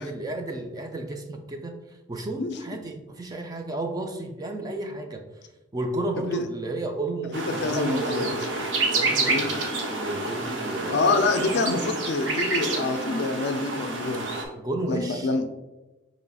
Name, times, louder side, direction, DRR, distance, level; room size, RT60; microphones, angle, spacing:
voice 1, 0.0-1.8 2.1-5.2 5.7-8.4 8.9-9.6 9.9-11.4 14.5-15.3, right 2 dB, 20° right, 4 dB, 0.3 m, -32 dB
sound 1, 7.3-14.5, right 2 dB, 65° right, 0.7 m, -28 dB
voice 2, 7.6-8.3 9.3-9.5 10.9-14.3 14.9-15.5, left 3 dB, 55° left, 7 dB, 0.4 m, -26 dB
5.4 x 3.0 x 2.3 m, 1.1 s
head